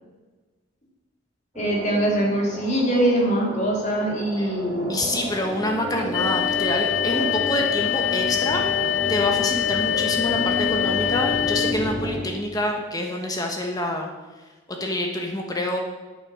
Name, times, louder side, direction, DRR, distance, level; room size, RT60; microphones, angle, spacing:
voice 1, 1.5-5.0 6.1-6.2, right 1 dB, 35° left, -1 dB, 3.0 m, -23 dB
sound 1, 1.5-12.2, left 1 dB, 20° right, 3.6 m, -31 dB
voice 2, 4.9-8.6 9.1-14.1 14.7-15.8, left 1 dB, 20° left, 2 dB, 1.2 m, -27 dB
sound 2, 6.1-11.7, left 11 dB, 65° left, 0.6 m, -24 dB
11.0 x 8.9 x 6.5 m, 1.3 s
head